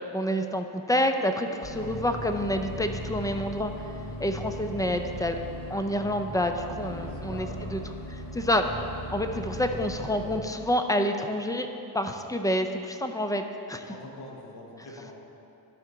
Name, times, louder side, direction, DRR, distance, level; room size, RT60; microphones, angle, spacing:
voice 1, 0.1-3.7 4.2-5.4 5.7-7.8 8.1-8.7 9.1-11.7 11.9-13.9, equal, 10° left, 6 dB, 0.3 m, -28 dB
sound 1, 1.6-10.4, equal, 40° left, 1.9 m, -38 dB
voice 2, 6.8-7.8 13.8-15.1, left 2 dB, 60° left, -2 dB, 1.6 m, -44 dB
12.0 x 4.6 x 3.8 m, 2.7 s
cardioid pair, 95°, 44 cm